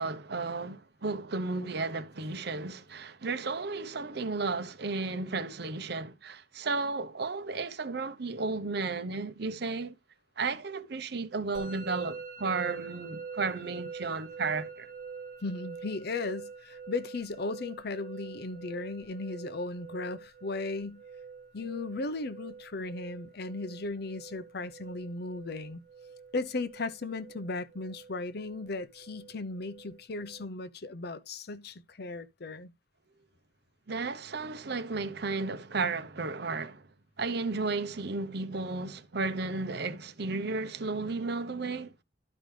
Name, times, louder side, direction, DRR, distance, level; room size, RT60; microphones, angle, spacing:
voice 1, 0.0-9.9 10.4-14.9 33.9-36.9 37.2-41.9, right 3 dB, 60° right, 0.9 m, -33 dB
Musical instrument, 11.5-30.4, right 5 dB, 45° right, 2.8 m, -46 dB
voice 2, 15.4-21.0 21.5-25.8 26.3-32.7, left 3 dB, 60° left, 0.8 m, -36 dB
12.0 x 5.2 x 3.3 m
head